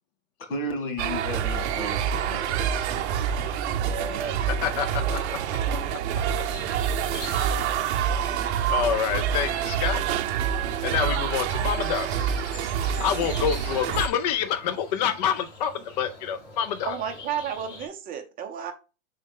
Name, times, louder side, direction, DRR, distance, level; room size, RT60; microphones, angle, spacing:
voice 1, 0.5-2.7, equal, 80° left, 4 dB, 2.5 m, -33 dB
sound 1, 1.0-14.1, right 8 dB, 55° right, 0.7 m, -27 dB
sound 2, 1.7-17.9, left 3 dB, 55° left, 2.5 m, -44 dB
voice 2, 4.5-5.4 5.7-5.8 8.1-8.4 8.7-10.0 10.8-12.2 13.0-17.0, left 8 dB, 35° left, 9 dB, 0.4 m, -27 dB
voice 3, 16.9-18.7, right 8 dB, 20° right, 5 dB, 0.8 m, -32 dB
6.4 x 4.1 x 3.5 m, 0.31 s
hypercardioid pair, 145°, 40 cm